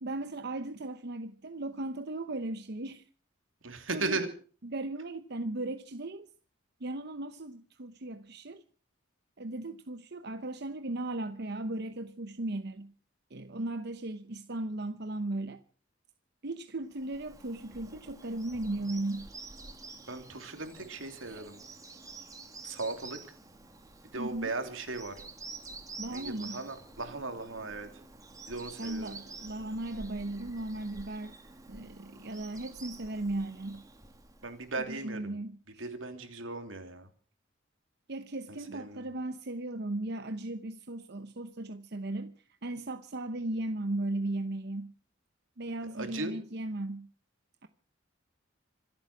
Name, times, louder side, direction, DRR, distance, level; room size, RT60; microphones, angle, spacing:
voice 1, 0.0-3.0 3.9-4.2 4.6-6.3 6.8-8.6 9.4-12.9 13.3-15.6 16.4-19.3 21.2-21.4 24.2-24.5 26.0-26.6 28.8-31.3 31.7-33.8 34.9-35.9 38.1-42.3 42.6-44.9 45.6-47.1 47.6-47.7, right 2 dB, 55° right, 0.9 m, -36 dB
voice 2, 3.6-4.3 20.1-21.6 22.6-23.2 24.1-25.2 26.1-27.9 28.5-29.2 34.4-35.4 35.8-37.1 38.5-39.0 45.9-46.3, right 3 dB, 80° right, 3.2 m, -37 dB
Bird vocalization bird call bird song, 16.9-34.9, right 3 dB, 15° right, 2.0 m, -49 dB
26.0 x 8.9 x 6.1 m
head